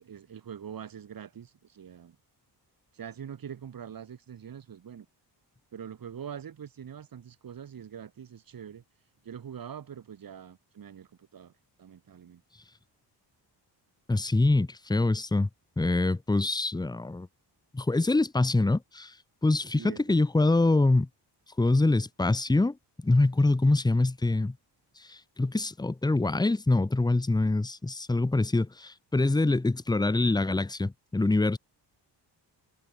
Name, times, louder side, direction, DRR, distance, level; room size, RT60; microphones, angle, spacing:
voice 1, 0.0-2.2 2.9-5.1 5.7-8.8 9.2-11.5 11.8-12.4 19.7-20.2, right 8 dB, 50° right, 6.2 m, -43 dB
voice 2, 14.1-15.5 15.8-17.3 17.7-19.1 19.4-21.1 21.6-22.8 23.0-24.5 25.0-31.6, left 2 dB, 10° left, 1.2 m, -25 dB
wide cardioid pair, 150°, 42 cm